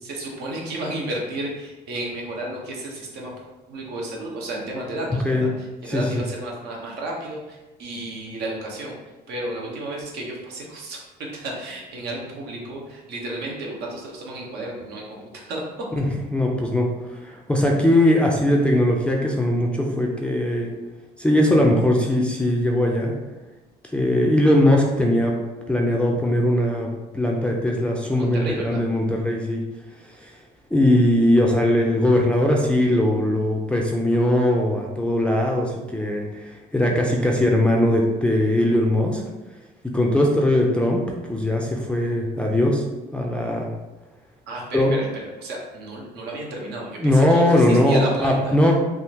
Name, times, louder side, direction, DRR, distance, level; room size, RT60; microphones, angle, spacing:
voice 1, 0.0-3.3 3.7-9.0 9.3-11.0 11.3-15.6 28.0-28.8 44.5-48.6, right 1 dB, 75° right, -1 dB, 0.9 m, -32 dB
voice 2, 5.9-6.2 16.0-16.1 16.3-16.9 17.2-20.7 21.2-23.1 23.9-25.3 25.7-26.9 27.1-29.6 30.2-30.3 30.7-39.2 39.9-42.8 43.1-43.7 44.7-44.9 47.0-48.7, left 1 dB, 5° left, -2 dB, 0.4 m, -20 dB
3.5 x 2.4 x 2.8 m, 1.1 s
cardioid pair, 110°, 17 cm